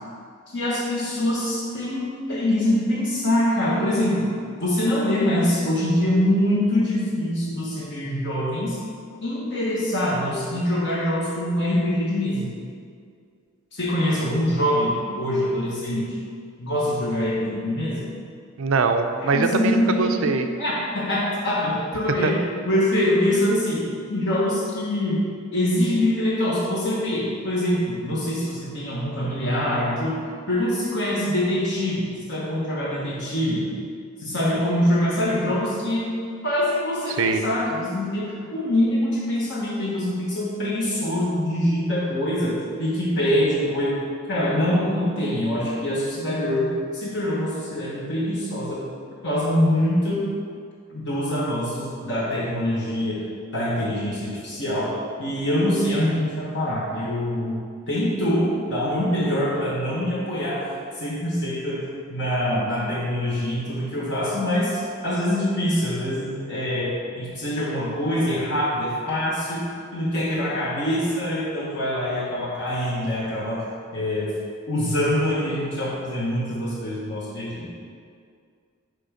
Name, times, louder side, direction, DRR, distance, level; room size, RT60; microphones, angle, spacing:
voice 1, 0.5-4.3 4.6-8.8 9.2-12.5 13.7-16.2 16.6-18.1 19.2-20.1 20.6-22.4 22.6-23.8 24.1-25.2 25.5-30.2 30.5-33.7 34.2-36.0 36.4-44.0 44.3-48.8 49.2-50.2 50.9-53.2 53.5-54.9 55.2-57.6 57.9-69.6 69.9-73.6 73.9-74.3 74.7-77.7, left 1 dB, 60° left, -6 dB, 1.3 m, -24 dB
voice 2, 18.6-20.5 22.2-22.3 37.2-37.4, right 4 dB, 85° right, 7 dB, 0.5 m, -22 dB
9.6 x 3.3 x 5.1 m, 2.2 s
head